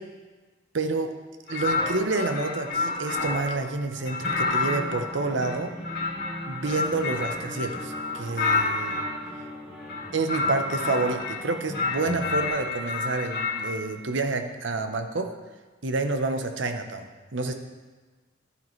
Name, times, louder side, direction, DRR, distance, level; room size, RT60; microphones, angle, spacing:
voice 1, 0.7-1.1 1.5-5.7 6.5-9.0 10.1-15.3 15.8-17.5, right 3 dB, 70° right, 7 dB, 0.8 m, -28 dB
sound 1, 1.5-3.6 4.1-9.2 9.8-11.4 11.7-13.7, left 3 dB, 50° left, 2.2 m, -29 dB
sound 2, 3.9-12.5, equal, 5° right, 3.1 m, -40 dB
11.5 x 9.4 x 3.2 m, 1.3 s
head